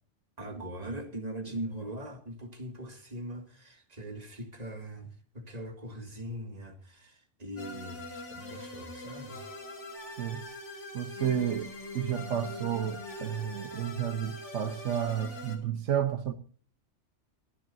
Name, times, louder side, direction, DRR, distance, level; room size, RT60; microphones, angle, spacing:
voice 1, 0.4-9.5, right 1 dB, 35° right, 2.2 m, -41 dB
sound 1, 7.6-15.6, left 1 dB, 85° left, 2.9 m, -42 dB
voice 2, 10.9-16.3, right 9 dB, 80° right, 1.2 m, -31 dB
30.0 x 10.5 x 2.7 m
omnidirectional pair, 1.2 m